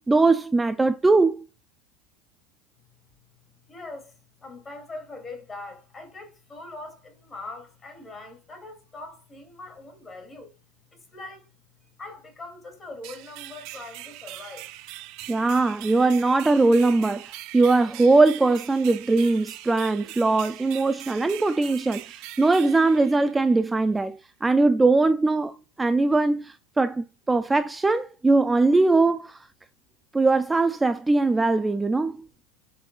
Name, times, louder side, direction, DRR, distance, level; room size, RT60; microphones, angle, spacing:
voice 1, 0.1-1.3 15.3-29.5 30.1-32.2, right 3 dB, 10° right, 0.4 m, -21 dB
voice 2, 3.7-10.5 10.9-11.5 12.0-14.7, left 2 dB, 20° left, 3.2 m, -42 dB
sound 1, 13.0-23.7, right 16 dB, 60° right, 0.8 m, -42 dB
10.0 x 6.0 x 2.5 m
supercardioid pair, 120°, 0 cm